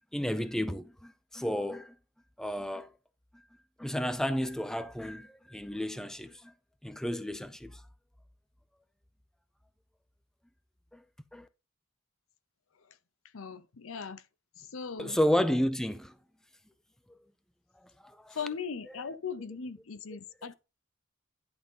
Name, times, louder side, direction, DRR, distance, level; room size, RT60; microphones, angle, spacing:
voice 1, 0.1-1.9 2.4-2.9 3.8-6.5 6.8-7.8 10.9-11.0 11.3-11.5 15.0-16.1 18.0-18.4 18.9-19.1, equal, 5° left, 0.5 m, -32 dB
voice 2, 13.3-14.2 14.6-15.2 18.3-20.5, left 6 dB, 70° left, 0.7 m, -39 dB
11.0 x 3.7 x 5.4 m
head